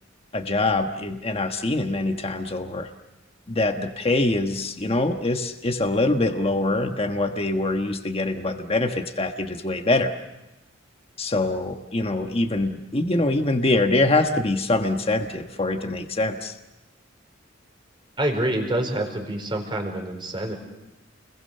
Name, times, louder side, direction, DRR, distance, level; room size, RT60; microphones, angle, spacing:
voice 1, 0.3-2.9 3.5-10.1 11.2-16.6, left 2 dB, 30° left, 5 dB, 1.3 m, -24 dB
voice 2, 18.2-20.6, right 1 dB, 25° right, 3 dB, 4.6 m, -26 dB
30.0 x 21.5 x 6.8 m, 1.0 s
head